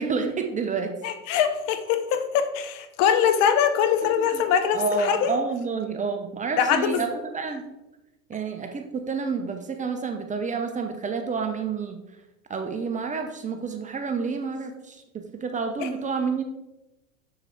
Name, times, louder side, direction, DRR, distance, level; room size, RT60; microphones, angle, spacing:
voice 1, 0.0-0.9 4.2-4.4 4.7-7.6 8.3-12.0 12.5-15.0 15.4-16.4, right 5 dB, 15° right, 5 dB, 0.8 m, -29 dB
voice 2, 1.0-5.3 6.6-7.0 15.8-15.9, left 8 dB, 45° left, 9 dB, 0.9 m, -23 dB
7.1 x 6.7 x 3.4 m, 0.97 s
figure-of-eight pair, 85°, 42 cm